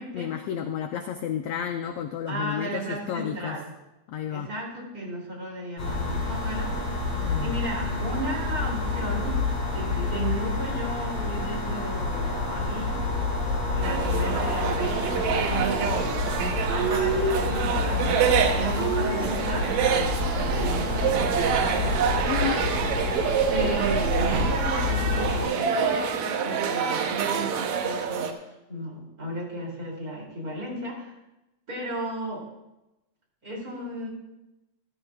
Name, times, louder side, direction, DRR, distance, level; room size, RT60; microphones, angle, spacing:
voice 1, 0.1-3.6 4.1-4.5 7.2-7.5 22.3-22.6, left 9 dB, 85° left, 7 dB, 1.4 m, -31 dB
voice 2, 2.3-3.7 4.3-6.8 7.4-9.5 9.7-12.9 13.7-16.4 16.7-22.0 23.5-31.1 31.7-32.4 33.4-34.1, right 1 dB, 30° right, -3 dB, 3.0 m, -34 dB
sound 1, 5.8-25.5, left 3 dB, 60° left, 4.2 m, -28 dB
sound 2, 13.8-28.3, right 7 dB, 75° right, 2.1 m, -26 dB
14.5 x 13.0 x 2.3 m, 0.95 s
omnidirectional pair, 3.4 m